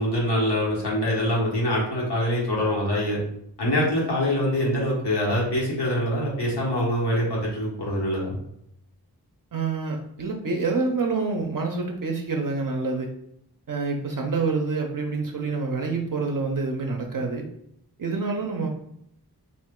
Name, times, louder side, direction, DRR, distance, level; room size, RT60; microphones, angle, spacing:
voice 1, 0.0-3.2 3.6-8.3, equal, 85° left, -4 dB, 1.2 m, -24 dB
voice 2, 9.5-13.1 13.7-17.5 18.0-18.7, right 4 dB, 55° right, 2 dB, 0.5 m, -27 dB
2.9 x 2.5 x 3.6 m, 0.74 s
wide cardioid pair, 80°, 39 cm